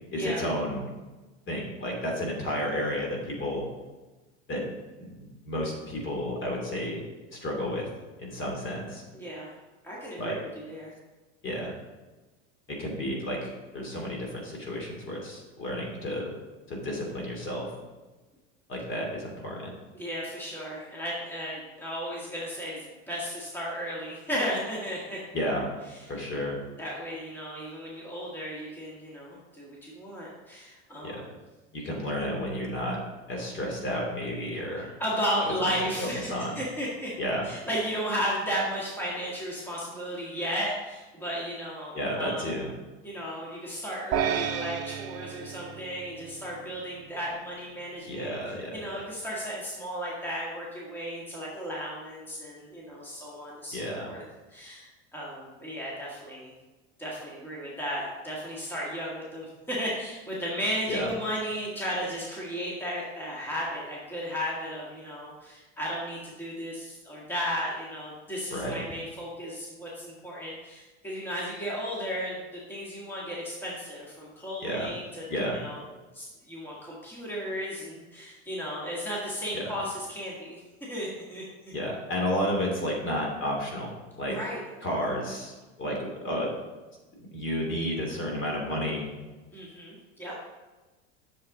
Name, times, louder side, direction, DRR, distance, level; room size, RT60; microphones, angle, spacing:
voice 1, 0.1-0.9 1.5-3.7 4.5-4.6 5.1-7.0 7.3-7.9 8.2-9.0 10.2-10.4 11.4-11.7 12.7-16.3 16.7-17.7 18.7-19.7 25.3-25.7 26.1-26.6 31.0-31.2 31.7-33.0 33.3-34.9 35.6-35.7 36.0-36.6 37.2-37.5 41.9-42.7 48.1-48.9 53.7-54.2 60.9-61.1 68.5-68.8 74.6-74.9 75.3-75.6 79.5-79.6 81.7-84.5 84.8-86.5 87.3-89.1, equal, 35° left, 0 dB, 2.5 m, -31 dB
voice 2, 9.1-9.5 9.8-10.4 10.6-10.9 19.9-25.2 26.8-31.3 34.8-36.3 36.6-37.1 37.4-42.5 43.0-48.3 48.7-54.2 54.5-56.5 57.0-72.4 72.7-75.3 75.5-75.8 76.1-81.4 84.3-84.6 89.5-90.3, equal, 5° left, -5 dB, 1.8 m, -34 dB
sound 1, 44.1-46.6, right 10 dB, 45° right, 0.7 m, -32 dB
7.8 x 6.9 x 3.8 m, 1.2 s
supercardioid pair, 115°, 35 cm